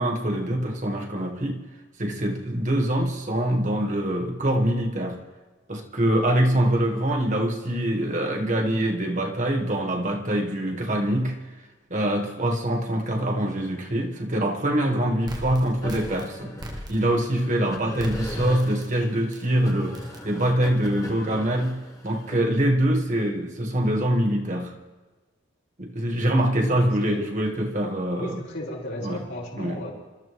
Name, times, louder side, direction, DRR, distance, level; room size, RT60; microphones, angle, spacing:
voice 1, 0.0-1.6 2.0-5.2 5.7-16.5 16.9-24.7 25.8-28.4 29.0-29.2 29.6-29.8, right 1 dB, 40° right, 2 dB, 1.5 m, -24 dB
voice 2, 6.5-6.9 17.3-17.9 26.6-27.6 28.1-29.9, left 1 dB, 65° left, -4 dB, 5.3 m, -36 dB
sound 1, 15.3-17.3 18.0-18.9 19.3-19.4 19.9-20.2, equal, 20° right, 1.0 m, -38 dB
sound 2, 15.8-22.4, left 1 dB, 15° left, 1.5 m, -39 dB
27.5 x 13.5 x 3.1 m, 1.3 s
head